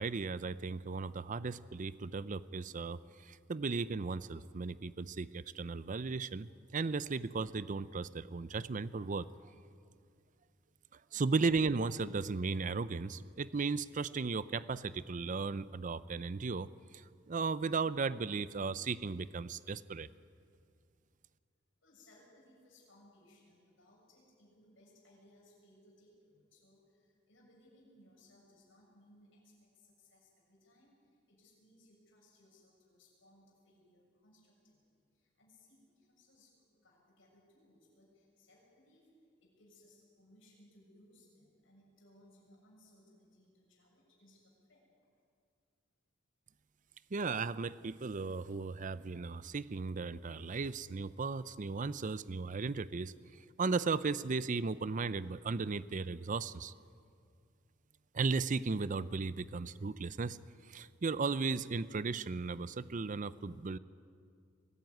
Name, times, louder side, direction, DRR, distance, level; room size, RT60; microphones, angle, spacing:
voice 1, 0.0-9.3 11.1-16.7 16.9-20.1 47.1-53.1 53.6-56.7 58.1-60.4 60.7-63.8, right 4 dB, 40° right, 17 dB, 0.5 m, -36 dB
voice 2, 21.8-30.9 31.3-36.5 36.8-39.1 39.4-44.8, left 1 dB, 75° left, -2 dB, 6.9 m, -65 dB
22.5 x 14.0 x 9.5 m, 2.3 s
head